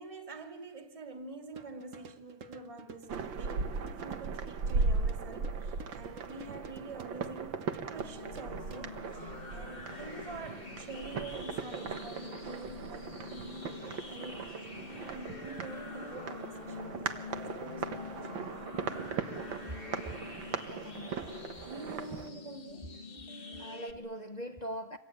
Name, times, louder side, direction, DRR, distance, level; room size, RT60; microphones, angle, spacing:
voice 1, 0.0-7.7 7.9-18.2 21.7-23.0, right 3 dB, 15° right, 2.2 m, -47 dB
sound 1, 1.5-9.1, right 5 dB, 45° right, 1.3 m, -52 dB
sound 2, 3.1-22.3, right 4 dB, 60° right, 2.0 m, -38 dB
sound 3, 7.9-23.9, left 4 dB, 25° left, 1.7 m, -46 dB
voice 2, 9.9-10.3 20.7-21.4 23.6-25.0, equal, 50° left, 0.4 m, -43 dB
27.5 x 23.0 x 9.3 m
omnidirectional pair, 2.4 m